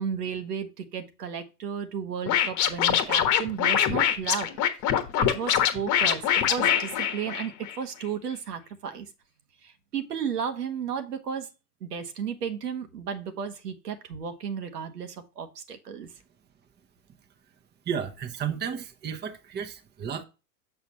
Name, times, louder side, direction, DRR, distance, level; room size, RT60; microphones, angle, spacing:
voice 1, 0.0-4.5 5.2-9.1 9.6-11.5 11.8-16.1, right 7 dB, 85° right, 1.2 m, -34 dB
Scratching (performance technique), 2.3-7.7, left 9 dB, 40° left, 1.2 m, -24 dB
voice 2, 17.8-20.2, right 7 dB, 20° right, 1.0 m, -33 dB
6.8 x 6.6 x 2.9 m
hypercardioid pair, 105°, 46 cm